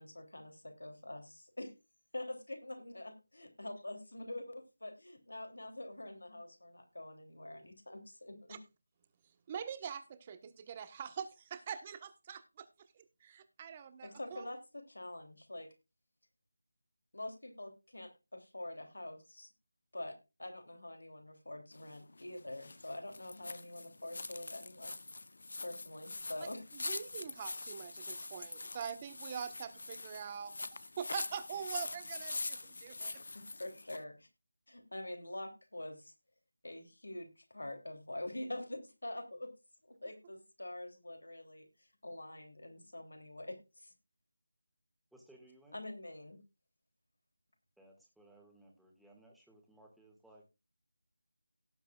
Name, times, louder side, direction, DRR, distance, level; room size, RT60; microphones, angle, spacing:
voice 1, 0.0-1.7 2.1-8.6 14.0-15.7 17.1-19.5 19.9-24.9 25.6-26.6 33.3-34.3 34.7-36.1 36.6-39.5 39.9-41.7 42.0-43.9 45.7-46.4, left 1 dB, 85° left, 6 dB, 3.1 m, -45 dB
voice 2, 9.5-12.7 12.9-14.5 26.4-26.5 26.7-33.2, right 7 dB, 20° right, 11 dB, 1.1 m, -44 dB
sound 1, 21.7-34.0, left 3 dB, 60° left, 0.8 m, -44 dB
voice 3, 45.1-45.8 47.8-50.5, right 1 dB, ahead, -2 dB, 1.9 m, -61 dB
17.5 x 8.3 x 2.4 m, 0.27 s
figure-of-eight pair, 165°, 0 cm